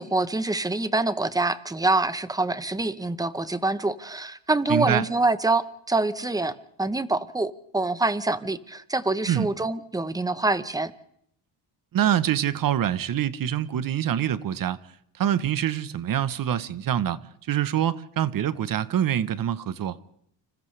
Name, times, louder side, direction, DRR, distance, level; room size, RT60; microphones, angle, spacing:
voice 1, 0.0-10.9, right 2 dB, 10° right, 0.8 m, -25 dB
voice 2, 4.7-5.0 9.3-9.5 11.9-14.8 15.2-17.2 17.5-20.0, right 10 dB, 45° right, 1.0 m, -25 dB
29.5 x 26.5 x 3.3 m
cardioid pair, 140°, 46 cm